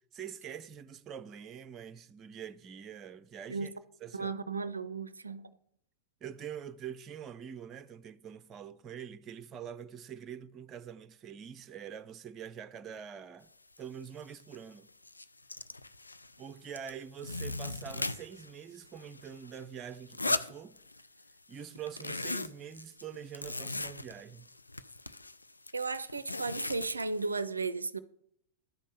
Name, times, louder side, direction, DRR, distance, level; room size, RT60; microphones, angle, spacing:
voice 1, 0.1-3.7 4.0-4.3 6.2-13.5 13.8-14.9 16.4-20.8 21.5-24.5, right 8 dB, 30° right, 0.5 m, -45 dB
voice 2, 4.1-5.5 25.7-28.0, right 4 dB, 80° right, 0.4 m, -35 dB
sound 1, 13.8-13.9 14.2-14.6 14.9-16.4 16.7-18.5 18.8-21.2 21.5-27.4, left 2 dB, 80° left, 0.4 m, -38 dB
12.0 x 5.3 x 6.7 m
figure-of-eight pair, 90°, 0 cm